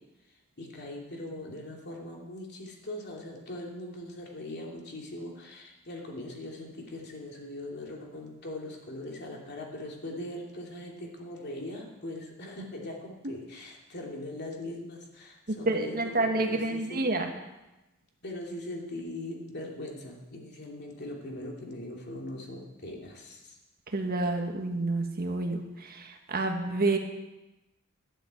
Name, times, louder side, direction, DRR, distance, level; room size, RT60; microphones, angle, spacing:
voice 1, 0.3-17.1 18.2-23.6, left 1 dB, 50° left, -1 dB, 2.8 m, -40 dB
voice 2, 15.5-17.3 23.9-25.6 26.0-27.0, right 2 dB, 45° right, 4 dB, 1.4 m, -28 dB
12.0 x 8.0 x 8.4 m, 1.0 s
head